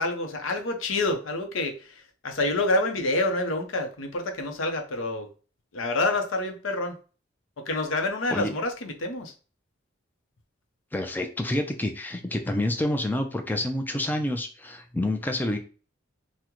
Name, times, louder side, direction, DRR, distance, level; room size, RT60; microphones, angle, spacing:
voice 1, 0.0-5.3 5.7-7.0 7.6-9.3, left 2 dB, 90° left, 4 dB, 0.7 m, -27 dB
voice 2, 10.9-15.6, left 1 dB, 10° left, 5 dB, 0.4 m, -28 dB
3.6 x 2.1 x 2.9 m, 0.36 s
head